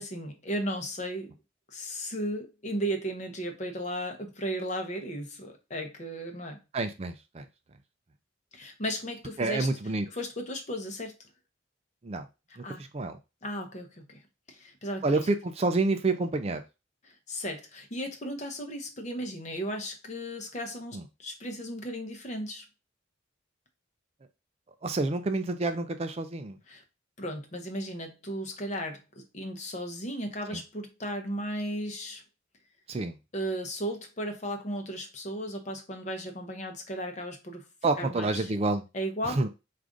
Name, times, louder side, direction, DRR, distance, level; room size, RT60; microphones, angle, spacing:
voice 1, 0.0-1.3 1.7-6.6 8.5-9.7 10.1-11.1 12.6-12.8 13.4-14.2 14.5-15.3 17.0-22.6 26.7-26.8 27.2-32.2 33.3-37.7 38.0-38.5 38.9-39.4, equal, 35° left, 0.7 m, -35 dB
voice 2, 6.7-7.4 9.4-10.1 12.0-12.2 12.6-13.2 15.0-16.6 20.9-21.0 24.8-26.6 30.5-30.6 32.9-33.1 37.8-38.8 39.2-39.5, right 3 dB, 30° right, 0.4 m, -28 dB
4.8 x 2.5 x 3.7 m
head